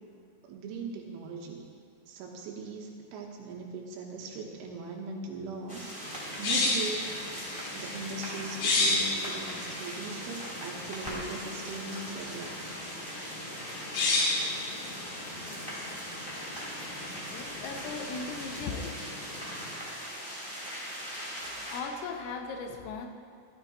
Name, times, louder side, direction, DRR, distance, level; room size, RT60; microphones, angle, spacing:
voice 1, 0.4-1.6 2.1-7.1 7.8-12.8, right 4 dB, 75° right, 0 dB, 3.5 m, -40 dB
sound 1, 5.7-21.8, equal, 10° left, 1.6 m, -40 dB
sound 2, 6.0-19.8, left 2 dB, 65° left, 3.4 m, -34 dB
voice 2, 17.3-19.0 21.4-23.1, left 4 dB, 85° left, 4 dB, 3.7 m, -38 dB
16.5 x 13.0 x 3.1 m, 2.3 s
omnidirectional pair, 5.9 m